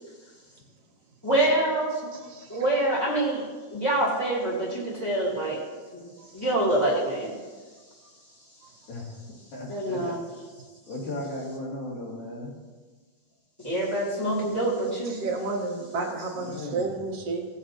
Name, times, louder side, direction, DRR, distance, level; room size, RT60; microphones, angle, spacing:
voice 1, 1.2-2.0 2.5-3.4 3.7-5.6 5.9-6.0 6.3-7.3 9.7-10.2 13.6-15.2, right 1 dB, 10° left, -8 dB, 1.3 m, -25 dB
voice 2, 2.3-2.6 6.2-6.3 15.0-17.5, right 3 dB, 65° right, -1 dB, 1.6 m, -31 dB
voice 3, 9.5-10.1 10.9-12.5 16.3-16.9, left 1 dB, 75° left, -5 dB, 4.2 m, -36 dB
17.0 x 7.5 x 2.8 m, 1.4 s
omnidirectional pair, 4.4 m